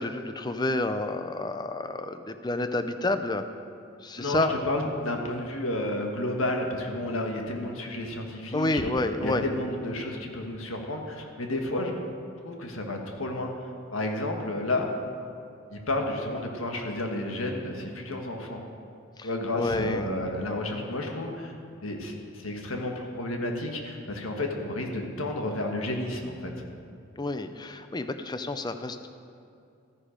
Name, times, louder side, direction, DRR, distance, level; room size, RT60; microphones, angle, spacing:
voice 1, 0.0-3.5 4.0-4.5 8.5-9.5 19.2-19.3 19.5-20.1 27.2-29.1, left 2 dB, 20° left, 9 dB, 0.5 m, -29 dB
voice 2, 4.2-8.9 9.2-11.9 12.4-14.9 15.7-18.6 19.2-21.5 21.8-26.5, left 1 dB, 85° left, 2 dB, 1.5 m, -31 dB
13.5 x 9.8 x 5.2 m, 2.5 s
head